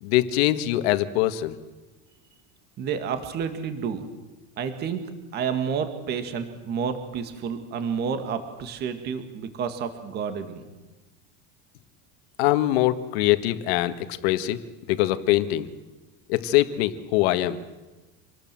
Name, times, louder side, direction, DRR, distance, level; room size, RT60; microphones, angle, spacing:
voice 1, 0.0-1.5 12.4-13.9 14.2-14.6 14.9-15.7 16.3-17.6, left 15 dB, 65° left, 11 dB, 1.7 m, -23 dB
voice 2, 2.8-4.0 4.6-5.0 5.3-10.6, right 6 dB, 30° right, 8 dB, 2.0 m, -30 dB
27.0 x 20.0 x 7.7 m, 1.2 s
cardioid pair, 175°, 33 cm